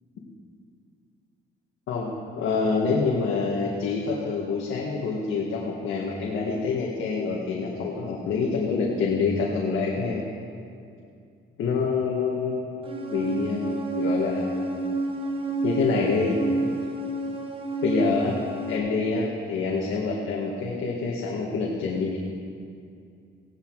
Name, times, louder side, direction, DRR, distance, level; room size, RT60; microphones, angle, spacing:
voice 1, 2.4-10.2 11.6-14.6 15.6-16.4 17.8-18.4 18.7-22.2, left 4 dB, 80° left, -3 dB, 1.9 m, -26 dB
sound 1, 12.9-18.8, right 2 dB, 25° right, 1.3 m, -29 dB
17.0 x 11.5 x 4.8 m, 2.4 s
cardioid pair, 130°, 20 cm